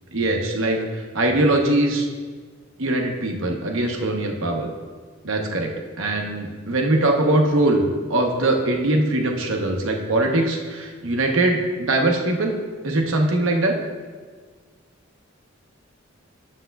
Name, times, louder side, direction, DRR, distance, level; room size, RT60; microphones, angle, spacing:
voice 1, 0.1-2.1 2.8-4.7 5.2-7.8 8.1-12.5 12.8-13.8, right 2 dB, 80° right, 2 dB, 0.9 m, -21 dB
10.0 x 7.3 x 2.3 m, 1.5 s
head